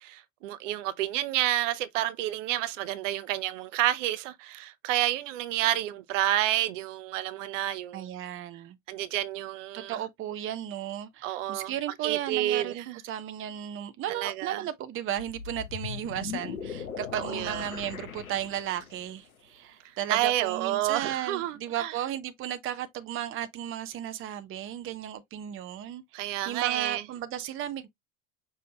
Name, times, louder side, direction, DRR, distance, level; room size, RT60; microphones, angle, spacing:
voice 1, 0.0-8.1 8.9-10.0 11.2-11.7 12.0-13.0 14.1-14.6 17.1-17.6 20.1-21.9 26.1-27.0, right 14 dB, 60° right, 0.8 m, -29 dB
voice 2, 7.9-8.8 9.7-27.9, right 11 dB, 30° right, 0.7 m, -35 dB
sound 1, 15.2-19.1, left 7 dB, 85° left, 1.0 m, -39 dB
5.5 x 3.2 x 2.8 m
hypercardioid pair, 80°, 41 cm